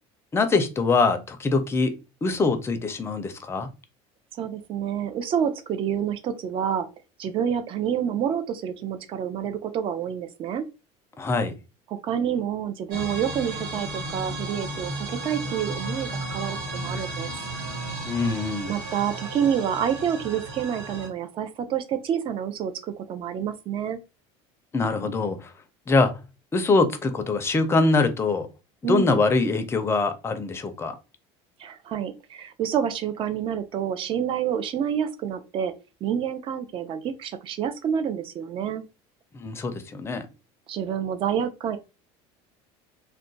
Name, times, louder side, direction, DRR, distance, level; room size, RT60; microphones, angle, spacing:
voice 1, 0.3-3.7 11.2-11.6 18.0-18.7 24.7-25.5 25.9-26.2 26.5-28.5 28.9-31.0 39.3-40.3, left 3 dB, 20° left, 0.5 m, -23 dB
voice 2, 4.4-6.9 7.2-10.6 12.0-17.3 18.7-24.0 28.8-29.2 31.6-35.7 36.0-38.8 40.7-41.8, right 8 dB, 40° right, 0.5 m, -28 dB
sound 1, 12.9-21.1, right 2 dB, 70° right, 1.3 m, -34 dB
2.3 x 2.2 x 3.8 m
cardioid pair, 130°, 14 cm